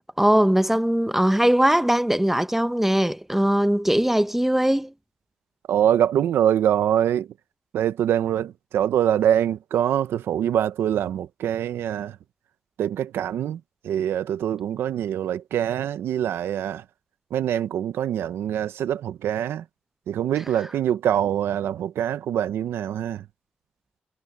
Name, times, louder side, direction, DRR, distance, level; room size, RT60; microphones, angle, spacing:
voice 1, 0.2-4.9, right 1 dB, 5° right, 1.1 m, -20 dB
voice 2, 5.7-7.3 7.7-12.2 12.8-16.8 17.3-19.6 20.1-23.2, right 10 dB, 90° right, 0.7 m, -24 dB
supercardioid pair, 50°, 4 cm